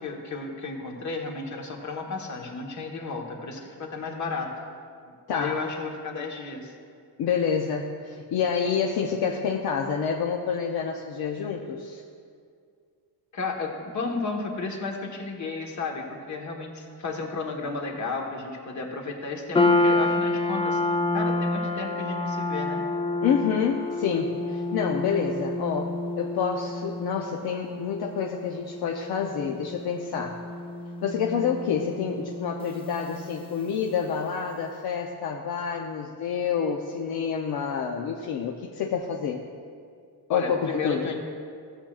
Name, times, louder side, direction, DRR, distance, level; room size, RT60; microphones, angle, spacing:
voice 1, 0.0-4.5 5.1-6.7 13.3-20.8 21.1-22.8 40.3-41.2, left 3 dB, 45° left, 1 dB, 1.4 m, -33 dB
voice 2, 5.3-5.6 7.2-12.0 23.2-30.4 31.0-39.4 40.3-41.1, left 7 dB, 70° left, 1 dB, 0.7 m, -28 dB
sound 1, 19.5-34.0, left 2 dB, 15° left, 0.4 m, -29 dB
15.5 x 7.3 x 2.4 m, 2.2 s
cardioid pair, 130°, 39 cm